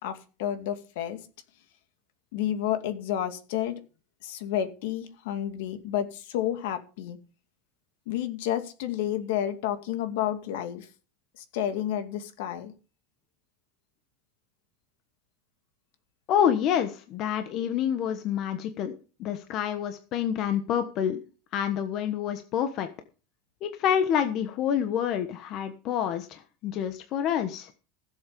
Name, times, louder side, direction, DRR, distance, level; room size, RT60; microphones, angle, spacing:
voice 1, 0.0-1.2 2.3-3.8 4.2-7.2 8.1-10.9 11.4-12.7, left 11 dB, 70° left, 8 dB, 2.3 m, -30 dB
voice 2, 16.3-18.9 19.2-21.2 21.5-22.9 23.6-27.7, left 9 dB, 35° left, 8 dB, 1.2 m, -27 dB
16.0 x 7.5 x 5.2 m, 0.35 s
supercardioid pair, 165°, 0 cm